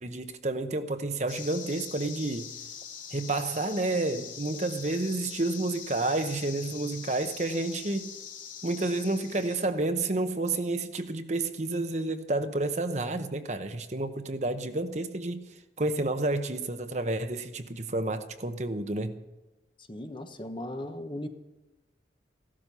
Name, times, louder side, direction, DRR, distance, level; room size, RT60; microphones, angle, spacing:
voice 1, 0.0-2.5 3.1-8.1 8.6-15.4 15.8-19.2, right 2 dB, 40° right, 0.9 m, -30 dB
sound 1, 1.3-9.7, left 7 dB, 45° left, 2.3 m, -43 dB
voice 2, 19.9-21.3, left 1 dB, 25° left, 1.0 m, -37 dB
16.5 x 12.5 x 5.6 m
head